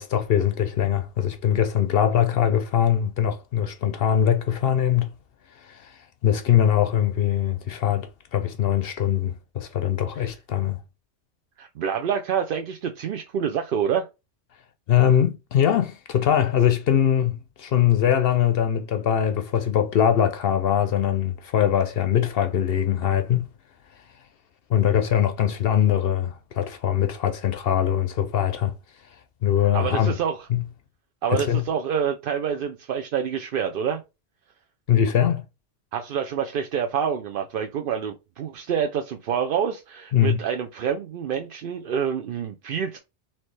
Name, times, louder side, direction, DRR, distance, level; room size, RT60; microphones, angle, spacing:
voice 1, 0.0-5.1 5.6-5.9 6.2-10.8 14.9-23.5 24.7-28.7 29.4-30.2 30.5-30.6 31.3-31.6 34.9-35.4 40.1-40.4, left 9 dB, 60° left, 0.7 m, -22 dB
voice 2, 11.6-14.1 29.7-30.5 31.2-34.0 35.9-43.0, right 7 dB, 60° right, 0.6 m, -27 dB
4.3 x 3.0 x 3.2 m
omnidirectional pair, 1.2 m